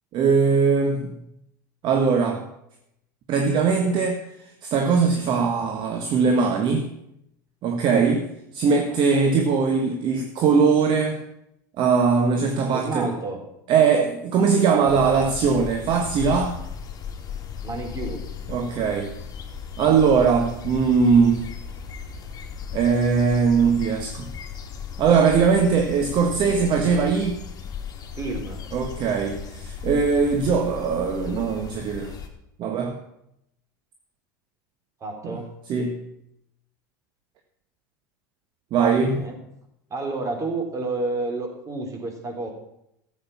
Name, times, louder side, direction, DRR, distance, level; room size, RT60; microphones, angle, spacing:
voice 1, 0.1-1.2 1.8-2.4 3.3-4.2 4.6-6.9 7.6-8.3 8.5-11.2 11.8-13.1 13.7-16.5 18.5-19.1 19.8-21.4 22.7-24.3 25.0-27.4 28.7-32.1 32.6-33.0 35.2-35.4 35.7-36.0 38.7-39.2, right 5 dB, 50° right, 4 dB, 1.5 m, -20 dB
voice 2, 8.9-9.4 12.7-13.4 17.6-18.3 28.2-28.6 35.0-35.5 39.0-39.4 39.9-42.5, right 3 dB, 30° right, 2 dB, 4.0 m, -30 dB
sound 1, 14.9-32.3, left 7 dB, 35° left, 2.6 m, -36 dB
13.0 x 8.1 x 7.2 m, 0.79 s
hypercardioid pair, 85°, 11 cm